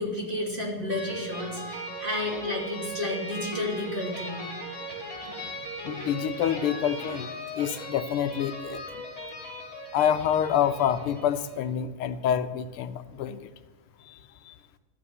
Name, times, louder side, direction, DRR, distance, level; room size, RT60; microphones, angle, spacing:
voice 1, 0.0-4.4, left 1 dB, 25° right, -2 dB, 3.2 m, -31 dB
sound 1, 0.9-11.6, equal, 10° left, 5.6 m, -38 dB
voice 2, 5.8-8.8 9.9-13.5 14.1-14.2 14.5-14.6, left 9 dB, 85° left, 11 dB, 1.6 m, -27 dB
14.0 x 7.8 x 9.6 m, 1.3 s
omnidirectional pair, 2.4 m